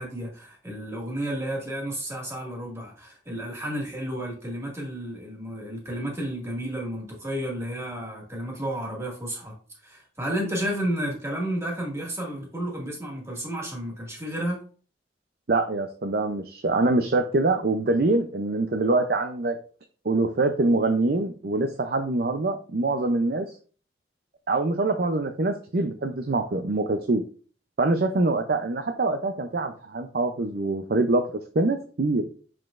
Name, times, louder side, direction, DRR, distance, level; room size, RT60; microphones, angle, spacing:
voice 1, 0.0-9.5 9.8-14.6, right 1 dB, 15° right, -1 dB, 2.0 m, -32 dB
voice 2, 15.5-19.6 20.0-23.5 24.5-27.2 27.8-31.3 31.5-32.2, right 2 dB, 55° right, 6 dB, 0.6 m, -24 dB
6.7 x 6.1 x 2.5 m, 0.40 s
head